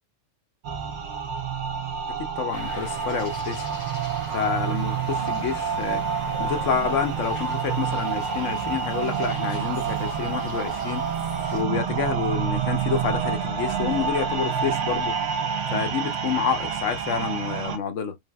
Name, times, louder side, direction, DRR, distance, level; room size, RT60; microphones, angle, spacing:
sound 1, 0.6-17.8, right 7 dB, 65° right, 0.8 m, -28 dB
voice 1, 2.1-3.7 4.3-6.0 6.4-11.1 11.5-15.2 15.7-18.2, left 7 dB, 75° left, 1.0 m, -28 dB
sound 2, 2.5-11.6, left 3 dB, 45° left, 0.4 m, -41 dB
3.3 x 2.8 x 2.2 m
omnidirectional pair, 1.3 m